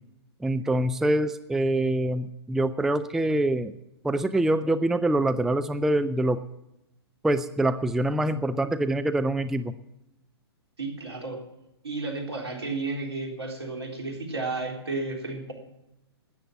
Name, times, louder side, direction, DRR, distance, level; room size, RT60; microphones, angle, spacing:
voice 1, 0.4-3.7 4.0-6.4 7.2-9.7, right 1 dB, 5° right, 11 dB, 0.4 m, -25 dB
voice 2, 10.8-11.4 11.8-15.5, right 3 dB, 75° right, 2 dB, 3.7 m, -32 dB
13.0 x 9.3 x 7.5 m, 0.88 s
figure-of-eight pair, 115°, 14 cm